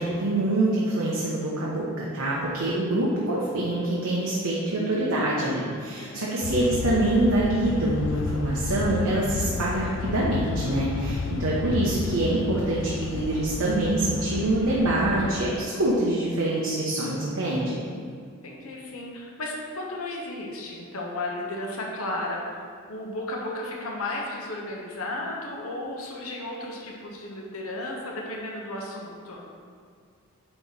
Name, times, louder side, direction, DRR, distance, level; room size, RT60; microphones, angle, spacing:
voice 1, 0.0-17.8, right 1 dB, 85° right, -5 dB, 0.9 m, -25 dB
voice 2, 5.9-6.7 18.4-22.4 22.9-29.5, left 2 dB, 90° left, -2 dB, 1.0 m, -34 dB
sound 1, 6.4-15.4, left 4 dB, 60° left, 0.3 m, -31 dB
8.8 x 3.0 x 4.1 m, 2.1 s
head